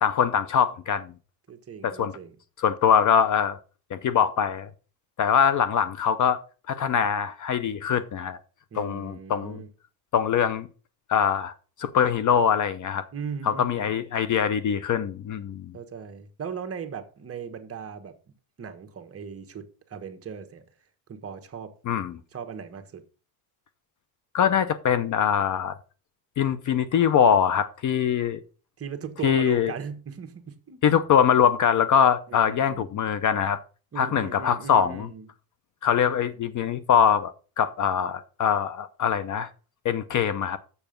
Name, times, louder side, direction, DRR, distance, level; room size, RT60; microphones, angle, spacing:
voice 1, 0.0-1.1 1.8-2.1 2.6-3.6 3.9-4.7 5.2-6.4 6.7-8.4 8.7-9.6 10.1-10.7 11.1-11.5 11.8-13.0 13.4-15.7 21.9-22.1 24.3-25.8 26.4-28.4 29.2-29.7 30.8-33.6 34.0-35.1 35.8-39.5 39.8-40.6, left 8 dB, 40° left, 0.7 m, -23 dB
voice 2, 1.5-2.3 8.7-9.7 13.1-13.9 15.7-18.1 18.6-20.6 21.1-21.7 22.3-23.0 28.8-30.8 32.3-32.9 33.9-35.3 36.0-36.2, right 6 dB, 30° right, 1.3 m, -38 dB
7.0 x 6.8 x 5.1 m
cardioid pair, 125°, 47 cm